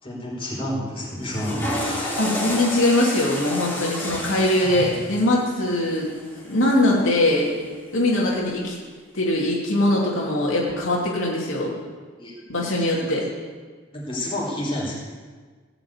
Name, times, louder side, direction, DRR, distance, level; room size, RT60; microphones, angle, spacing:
voice 1, 0.0-2.2 12.2-12.8 13.9-15.0, left 1 dB, 30° left, -5 dB, 4.5 m, -30 dB
Water / Toilet flush, 1.2-7.4, equal, 10° left, 3.4 m, -31 dB
voice 2, 2.2-6.1 6.4-7.6 7.9-8.8 9.1-11.7 12.5-13.2, left 1 dB, 85° left, -4 dB, 2.7 m, -21 dB
16.5 x 5.9 x 8.9 m, 1.5 s
head